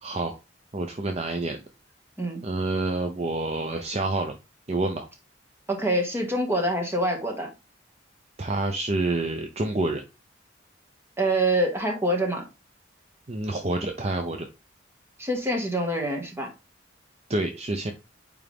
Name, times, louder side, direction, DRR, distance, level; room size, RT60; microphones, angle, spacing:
voice 1, 0.0-0.4 0.7-1.6 2.4-4.3 4.7-5.1 8.4-10.0 13.3-14.5 17.3-17.9, right 2 dB, 35° right, 0.7 m, -28 dB
voice 2, 5.7-7.5 11.2-12.4 15.2-16.5, right 1 dB, 15° right, 1.7 m, -25 dB
9.0 x 3.6 x 3.4 m
head